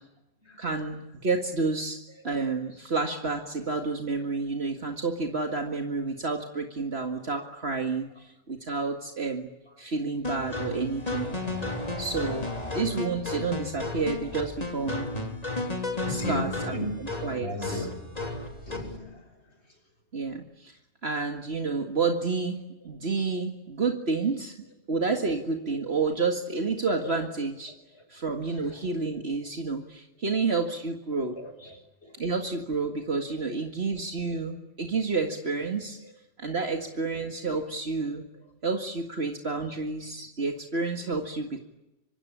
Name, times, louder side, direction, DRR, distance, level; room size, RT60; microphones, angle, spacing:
voice 1, 0.6-9.5 9.8-11.3 12.0-12.5 12.7-15.1 16.1-16.9 17.2-17.9 20.1-20.8 21.0-24.5 24.9-27.7 28.1-31.4 32.2-36.0 36.4-38.2 38.6-41.6, right 4 dB, 60° right, 4 dB, 2.2 m, -30 dB
sound 1, 10.2-19.0, left 2 dB, 30° left, 3.8 m, -33 dB
voice 2, 16.1-19.2 27.0-27.2 27.9-28.0 28.4-28.8 31.4-32.2, left 1 dB, 60° left, 6 dB, 6.3 m, -37 dB
26.0 x 25.0 x 8.7 m, 0.93 s
omnidirectional pair, 1.2 m